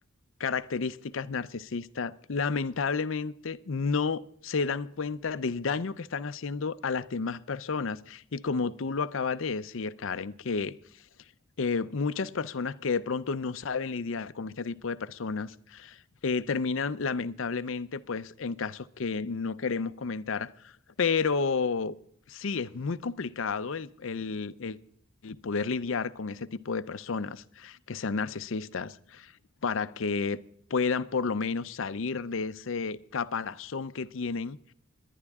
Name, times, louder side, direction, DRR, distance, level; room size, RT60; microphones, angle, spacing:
voice 1, 0.4-10.7 11.6-20.7 21.0-21.9 22.3-24.8 25.2-29.3 29.6-30.4 30.7-34.7, left 5 dB, 70° left, 0.6 m, -31 dB
20.0 x 11.0 x 3.6 m
head